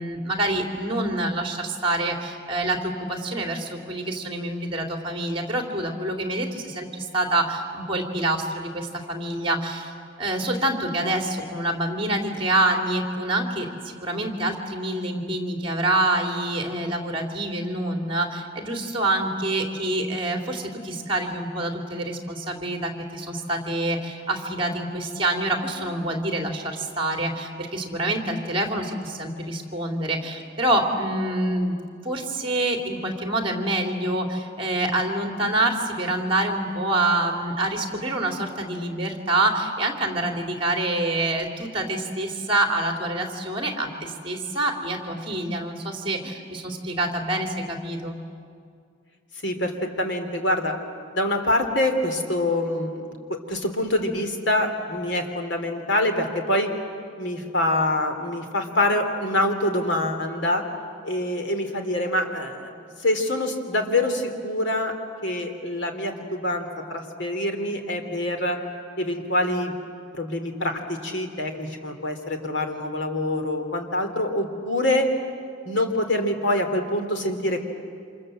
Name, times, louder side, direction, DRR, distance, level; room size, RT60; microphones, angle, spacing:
voice 1, 0.0-9.9 10.2-31.7 32.0-48.2, right 1 dB, 30° right, 3 dB, 3.1 m, -26 dB
voice 2, 49.4-50.7 51.1-56.7 57.2-60.6 61.0-64.9 65.2-68.6 69.0-69.7 70.1-75.1 75.6-77.6, left 1 dB, 65° left, 5 dB, 2.9 m, -25 dB
28.5 x 27.0 x 7.7 m, 2.2 s
head